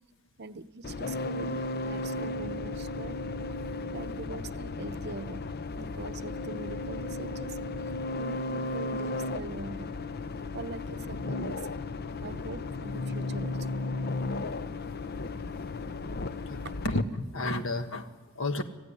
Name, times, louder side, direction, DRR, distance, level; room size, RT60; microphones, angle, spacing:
voice 1, 0.4-3.2 3.5-3.6 3.9-7.6 8.2-10.1 10.5-11.7 12.2-13.7 16.6-16.8, right 3 dB, 50° right, 0.8 m, -42 dB
sound 1, 0.8-17.0, left 2 dB, 45° left, 0.6 m, -35 dB
voice 2, 16.5-18.6, left 2 dB, 60° left, 1.5 m, -33 dB
26.5 x 15.5 x 9.8 m
head